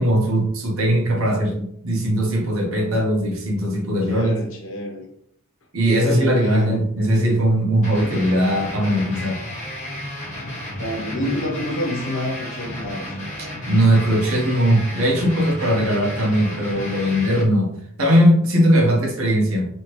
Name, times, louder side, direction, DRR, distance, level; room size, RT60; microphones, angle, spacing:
voice 1, 0.0-4.4 5.7-9.4 13.7-19.7, equal, 80° right, -1 dB, 1.1 m, -19 dB
voice 2, 4.1-5.1 6.0-6.8 8.0-8.1 10.8-13.2, left 1 dB, 65° left, 0 dB, 1.1 m, -28 dB
sound 1, 7.8-17.4, left 1 dB, 35° left, 1.4 m, -33 dB
3.2 x 3.1 x 3.3 m, 0.69 s
head